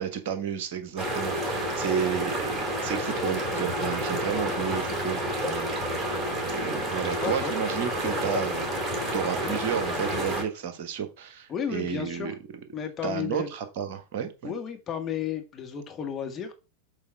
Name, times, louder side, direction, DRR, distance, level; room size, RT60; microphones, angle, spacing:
voice 1, 0.0-5.8 6.4-8.7 9.1-12.3 13.0-14.5, right 8 dB, 50° right, 1.5 m, -32 dB
sound 1, 1.0-10.4, right 1 dB, 20° right, 2.9 m, -29 dB
voice 2, 7.2-7.5 9.4-9.6 11.5-12.3 12.7-13.5 14.4-16.5, left 8 dB, 25° left, 1.7 m, -33 dB
7.3 x 4.3 x 4.7 m
figure-of-eight pair, 90°, 0 cm